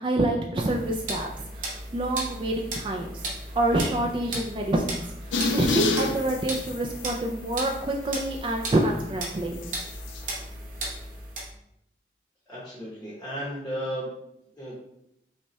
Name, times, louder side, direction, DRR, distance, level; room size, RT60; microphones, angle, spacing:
voice 1, 0.0-3.1 3.5-9.6, right 1 dB, 25° right, 1 dB, 0.3 m, -27 dB
sound 1, 0.6-11.5, right 1 dB, 45° right, 1.0 m, -36 dB
sound 2, 5.3-7.0 7.5-7.7 9.6-10.2, left 2 dB, 90° left, 0.5 m, -27 dB
voice 2, 12.5-14.1 14.6-14.7, equal, 5° left, -7 dB, 0.9 m, -34 dB
5.4 x 2.3 x 3.1 m, 0.79 s
head